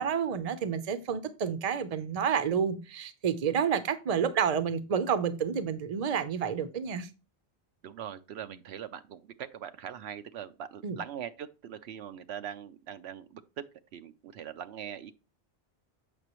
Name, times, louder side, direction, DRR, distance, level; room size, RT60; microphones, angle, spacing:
voice 1, 0.0-7.1 10.8-11.0, right 7 dB, 40° right, 0.7 m, -29 dB
voice 2, 7.8-13.6 13.9-15.1, right 9 dB, 80° right, 0.8 m, -41 dB
8.0 x 5.8 x 3.0 m
omnidirectional pair, 1.1 m